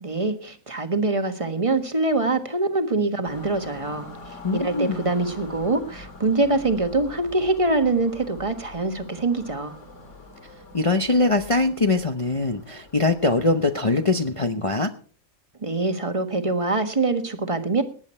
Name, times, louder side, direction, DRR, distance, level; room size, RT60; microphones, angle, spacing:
voice 1, 0.0-9.7 15.6-17.8, right 2 dB, 25° right, 7 dB, 1.5 m, -24 dB
sound 1, 3.2-14.3, left 2 dB, 55° left, 2.3 m, -44 dB
voice 2, 4.4-5.0 10.7-14.9, left 2 dB, 30° left, 6 dB, 0.7 m, -22 dB
18.5 x 10.5 x 4.4 m, 0.42 s
omnidirectional pair, 1.5 m